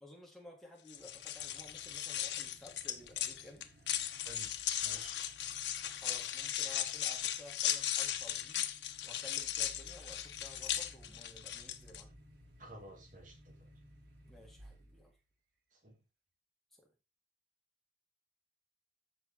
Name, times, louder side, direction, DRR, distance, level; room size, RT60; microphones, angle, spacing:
voice 1, 0.0-3.6 5.9-8.7 9.0-12.1 14.2-15.1, left 1 dB, ahead, 3.4 m, -55 dB
sound 1, 0.9-12.0, left 11 dB, 90° left, 1.2 m, -37 dB
sound 2, 0.9-15.2, equal, 80° right, 5.2 m, -60 dB
voice 2, 4.8-5.2 12.6-13.7 15.7-16.0, right 1 dB, 45° right, 2.7 m, -53 dB
14.5 x 5.9 x 3.6 m
head